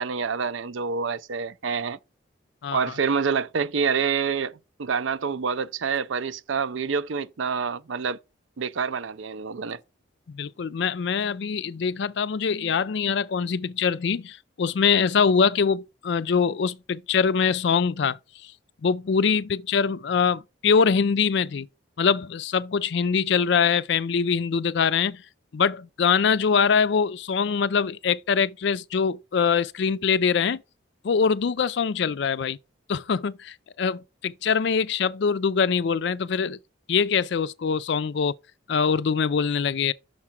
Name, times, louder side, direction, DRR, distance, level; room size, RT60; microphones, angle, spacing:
voice 1, 0.0-2.0 2.7-8.2 8.6-9.8, right 5 dB, 75° right, 0.5 m, -27 dB
voice 2, 10.3-18.2 18.8-21.7 22.0-25.2 25.5-30.6 31.0-32.6 32.9-36.6 36.9-38.3 38.7-39.9, left 6 dB, 60° left, 0.4 m, -23 dB
6.5 x 4.8 x 5.8 m
head